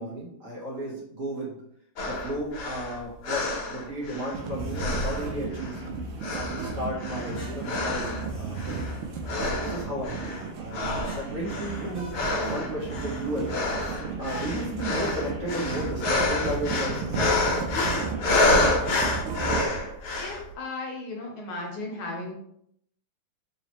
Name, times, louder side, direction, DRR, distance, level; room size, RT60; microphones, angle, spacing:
voice 1, 0.0-1.6 2.0-5.8 6.3-8.8 9.4-10.3 10.6-17.2, equal, 50° right, -5 dB, 1.1 m, -34 dB
sound 1, 2.0-4.4 4.7-5.9 6.2-8.3 8.6-9.0 9.3-10.5 10.7-20.4, left 2 dB, 90° left, 1.8 m, -28 dB
sound 2, 4.3-19.7, right 4 dB, 75° right, 1.4 m, -34 dB
sound 3, 4.6-5.2 7.3-8.9 11.0-12.7 13.8-14.5 15.6-15.9 17.5-17.8, right 5 dB, 10° left, 0.8 m, -41 dB
voice 2, 20.2-22.3, left 2 dB, 70° left, 0 dB, 1.6 m, -35 dB
4.0 x 2.9 x 2.9 m, 0.71 s
omnidirectional pair, 2.4 m